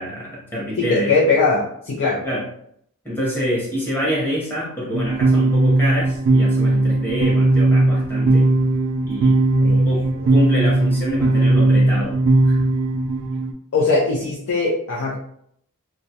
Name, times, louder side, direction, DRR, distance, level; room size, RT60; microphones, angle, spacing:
voice 1, 0.0-1.2 2.2-2.4 3.0-8.5 9.1-9.4 9.8-10.0 10.3-12.2 12.4-12.6, equal, 10° left, -6 dB, 0.8 m, -26 dB
voice 2, 0.8-2.2 9.6-9.9 13.7-15.2, left 3 dB, 60° left, -5 dB, 0.5 m, -20 dB
sound 1, 4.9-13.5, right 2 dB, 65° right, 0.4 m, -17 dB
2.3 x 2.0 x 2.7 m, 0.68 s
head